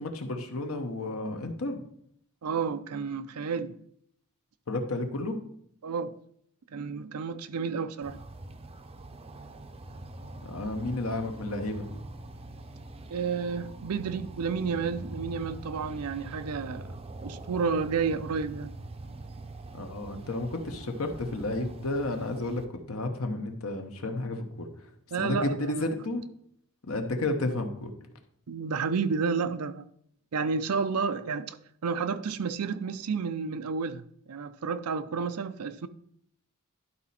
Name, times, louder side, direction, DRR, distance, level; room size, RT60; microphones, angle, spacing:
voice 1, 0.0-1.8 4.7-5.4 10.5-11.9 19.7-22.6 22.9-24.7 25.2-26.2 26.8-27.9, left 2 dB, 70° left, 1.0 m, -32 dB
voice 2, 2.4-3.7 5.8-6.1 6.7-8.2 13.1-17.0 17.2-18.7 25.1-25.9 28.5-29.8 30.3-31.6 31.8-35.9, right 5 dB, 80° right, 0.5 m, -31 dB
sound 1, 8.0-22.6, right 2 dB, 25° right, 0.6 m, -44 dB
11.5 x 4.2 x 4.2 m
head